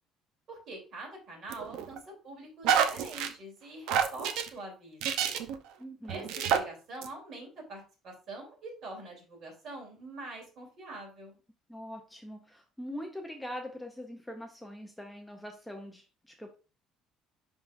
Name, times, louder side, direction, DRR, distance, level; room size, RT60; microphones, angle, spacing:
voice 1, 0.5-5.2 6.1-11.4, right 2 dB, 45° right, 0 dB, 3.2 m, -45 dB
sound 1, 1.5-2.0 2.6-3.3 3.9-4.5 5.0-5.6 6.1-6.6 7.0-7.1, right 8 dB, 75° right, 0.7 m, -28 dB
voice 2, 5.8-6.3 11.7-16.6, equal, 5° left, 3 dB, 0.5 m, -43 dB
11.0 x 3.8 x 2.5 m, 0.34 s
cardioid pair, 170°, 0 cm